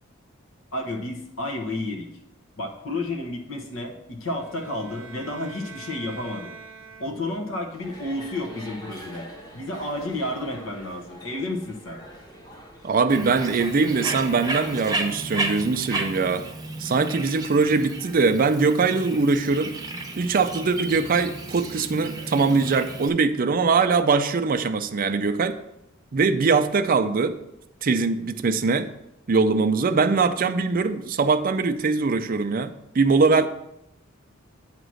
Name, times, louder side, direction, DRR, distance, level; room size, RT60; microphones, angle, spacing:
voice 1, 0.7-2.1 2.6-6.5 7.0-9.3 9.5-12.0, left 1 dB, 70° left, 1 dB, 1.2 m, -31 dB
sound 1, 4.3-7.5, right 5 dB, 85° right, 0.8 m, -44 dB
sound 2, 7.7-15.1, right 1 dB, 20° left, 1.2 m, -44 dB
voice 2, 12.8-16.4 16.8-19.7 20.2-25.6 26.1-27.4 27.8-28.9 29.3-33.5, right 4 dB, 45° right, 9 dB, 0.5 m, -22 dB
Bird, 13.1-23.1, right 2 dB, 20° right, 0.8 m, -33 dB
8.8 x 3.0 x 6.2 m, 0.84 s
head